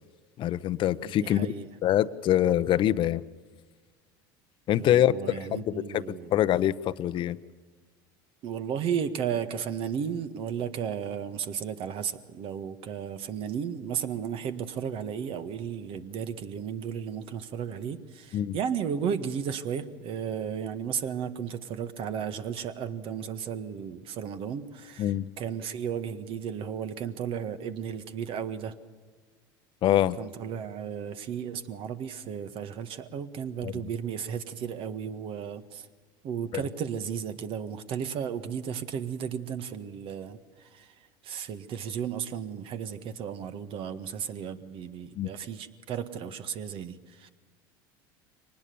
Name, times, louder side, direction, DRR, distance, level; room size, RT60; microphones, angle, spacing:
voice 1, 0.4-1.5 1.8-3.2 4.7-6.0 6.3-7.4 18.3-18.6 25.0-25.3 29.8-30.2 33.6-33.7 45.2-45.3, left 12 dB, 45° left, 15 dB, 0.8 m, -24 dB
voice 2, 1.0-1.7 4.7-6.4 8.4-28.7 30.2-35.9 36.2-47.3, right 8 dB, 50° right, 11 dB, 1.7 m, -34 dB
24.0 x 19.5 x 7.0 m, 1.5 s
supercardioid pair, 95°, 11 cm